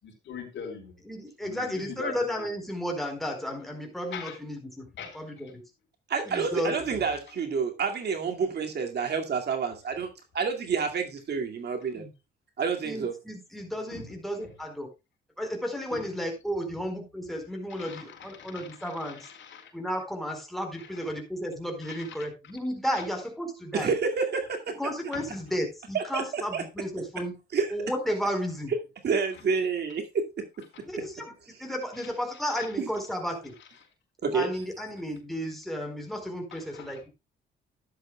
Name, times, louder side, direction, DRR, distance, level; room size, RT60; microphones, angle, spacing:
voice 1, 0.0-0.9 1.4-2.5 4.1-4.4 4.9-5.2 13.9-14.1 14.4-14.5 15.9-16.0 17.7-19.7 20.8-20.9 21.8-22.2 22.9-23.0 25.1-25.3 30.7-30.8 32.6-32.7 36.5-36.9, left 6 dB, 70° left, 4.3 m, -42 dB
voice 2, 1.0-5.6 6.3-6.8 12.0-12.1 12.8-14.9 15.4-19.3 19.7-23.9 24.8-27.4 27.7-28.7 30.9-31.3 31.6-33.6 34.3-37.1, equal, ahead, 4.3 m, -33 dB
voice 3, 6.1-12.0 12.6-13.1 23.7-24.8 25.9-26.6 27.5-27.7 29.0-30.4 32.8-32.9 34.2-34.5, right 5 dB, 55° right, 2.2 m, -29 dB
13.0 x 10.5 x 2.3 m
cardioid pair, 90°, 20 cm